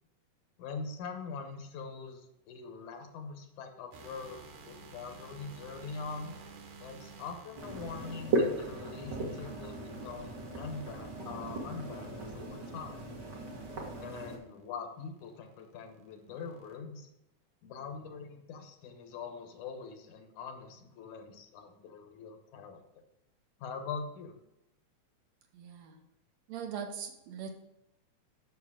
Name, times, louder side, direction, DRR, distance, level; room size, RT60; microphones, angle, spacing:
voice 1, 0.6-6.4 6.8-13.1 14.0-17.1 17.6-22.8 23.6-24.3, left 5 dB, 80° left, 5 dB, 2.4 m, -43 dB
sound 1, 3.9-12.5 13.3-13.8 14.3-14.6 15.0-16.8, right 4 dB, 90° right, 2.6 m, -53 dB
sound 2, 7.6-14.4, right 2 dB, 45° right, 1.7 m, -37 dB
voice 2, 25.5-26.0 26.5-27.5, right 7 dB, 70° right, 4 dB, 1.9 m, -41 dB
7.1 x 6.5 x 4.8 m, 0.87 s
omnidirectional pair, 3.5 m